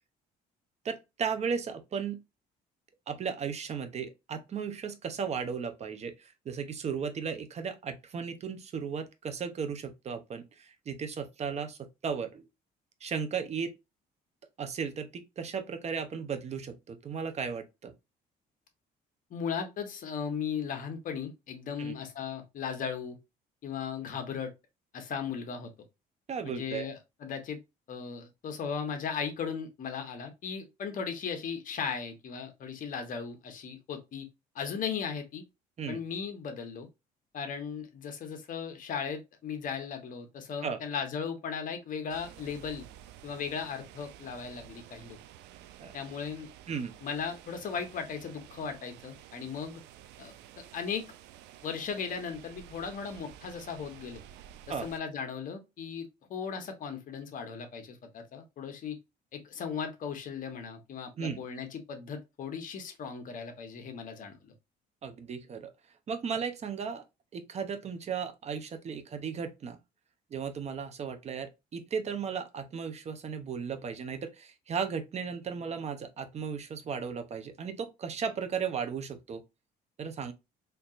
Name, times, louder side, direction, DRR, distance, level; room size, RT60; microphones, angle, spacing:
voice 1, 0.8-2.2 3.1-12.4 13.0-13.7 14.6-17.9 21.8-21.9 26.3-26.9 35.8-36.0 40.6-40.8 45.8-45.9 46.7-46.9 54.7-54.9 61.2-61.4 65.0-65.7 66.1-67.0 67.3-69.8 70.3-79.4 80.0-80.3, right 6 dB, 40° right, 0.8 m, -35 dB
voice 2, 19.3-23.2 23.6-24.5 24.9-25.7 26.4-27.6 27.9-34.3 34.5-35.4 35.9-36.9 37.3-42.9 43.2-45.2 45.9-46.5 47.0-49.8 50.2-51.1 51.6-54.2 54.7-59.0 59.3-64.5, left 6 dB, 55° left, 1.1 m, -37 dB
sound 1, 42.1-55.0, right 11 dB, 85° right, 0.4 m, -52 dB
4.4 x 2.7 x 2.5 m
cardioid pair, 110°, 17 cm